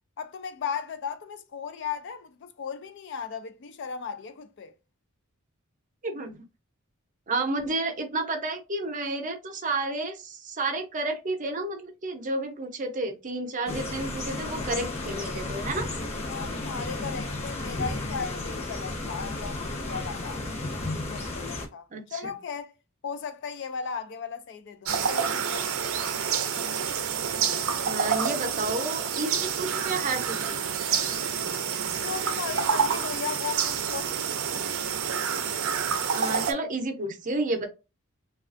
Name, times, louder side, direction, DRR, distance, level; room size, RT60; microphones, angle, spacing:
voice 1, 0.2-4.7 16.3-20.4 21.1-21.9 22.1-22.7 23.0-25.7 31.9-34.1, left 6 dB, 60° left, 0.4 m, -36 dB
voice 2, 6.0-6.4 7.3-15.9 21.9-22.2 27.8-30.6 36.1-37.7, right 2 dB, 40° right, 0.6 m, -31 dB
sound 1, 13.7-21.7, left 2 dB, 30° left, 0.8 m, -33 dB
sound 2, 24.9-36.5, right 7 dB, 80° right, 0.5 m, -28 dB
3.3 x 2.3 x 2.5 m
head